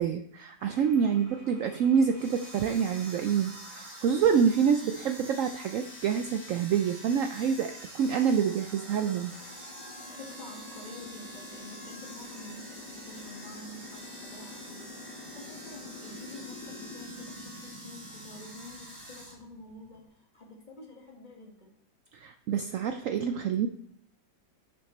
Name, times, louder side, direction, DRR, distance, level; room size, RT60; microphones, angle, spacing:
voice 1, 0.0-9.4 22.1-23.7, right 7 dB, 85° right, 8 dB, 0.7 m, -27 dB
sound 1, 0.6-20.1, left 2 dB, 50° left, 2.6 m, -49 dB
sound 2, 2.1-19.4, right 1 dB, 45° right, 3.3 m, -47 dB
voice 2, 10.1-21.7, left 2 dB, 25° left, 0 dB, 1.8 m, -49 dB
11.0 x 7.0 x 3.1 m, 0.69 s
omnidirectional pair, 1.9 m